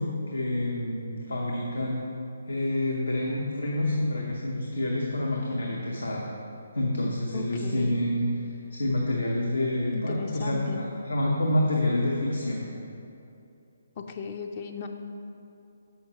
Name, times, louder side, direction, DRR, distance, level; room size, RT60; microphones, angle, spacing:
voice 1, 0.0-2.1 2.5-6.3 6.7-8.4 8.7-12.7, left 1 dB, 75° left, -2 dB, 0.8 m, -28 dB
voice 2, 7.3-8.0 9.9-10.8 14.0-14.9, left 5 dB, 35° left, 3 dB, 0.4 m, -36 dB
6.7 x 5.6 x 4.3 m, 2.7 s
figure-of-eight pair, 140°, 0 cm